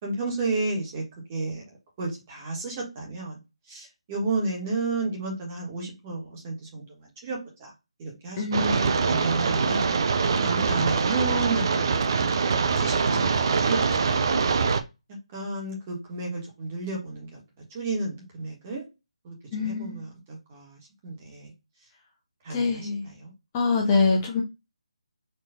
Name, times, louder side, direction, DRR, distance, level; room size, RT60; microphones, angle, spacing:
voice 1, 0.0-1.0 1.3-1.6 2.0-3.4 3.7-6.8 7.2-7.7 8.0-9.9 10.4-13.3 13.6-14.5 15.3-17.4 17.7-18.8 19.2-21.5 22.4-23.3, right 3 dB, 20° right, 1.5 m, -32 dB
voice 2, 8.4-9.1 19.5-20.0 22.5-23.1 23.5-24.4, left 4 dB, 15° left, 0.6 m, -25 dB
sound 1, 8.5-14.8, right 5 dB, 40° right, 0.5 m, -24 dB
4.3 x 3.0 x 2.7 m
figure-of-eight pair, 160°, 3 cm